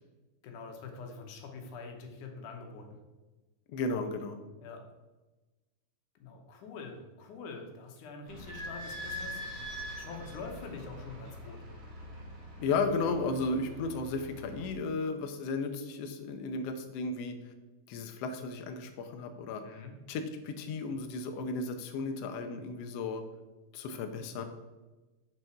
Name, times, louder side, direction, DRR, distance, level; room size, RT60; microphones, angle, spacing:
voice 1, 0.4-3.0 4.6-4.8 6.2-11.6 19.6-20.0, left 4 dB, 90° left, 3 dB, 2.6 m, -45 dB
voice 2, 3.7-4.4 12.6-17.4 17.9-19.6 20.1-23.2 23.7-24.4, left 3 dB, 70° left, 6 dB, 1.6 m, -34 dB
Idling / Squeak, 8.3-14.7, equal, 70° right, 3.2 m, -43 dB
7.2 x 5.7 x 4.6 m, 1.2 s
omnidirectional pair, 3.5 m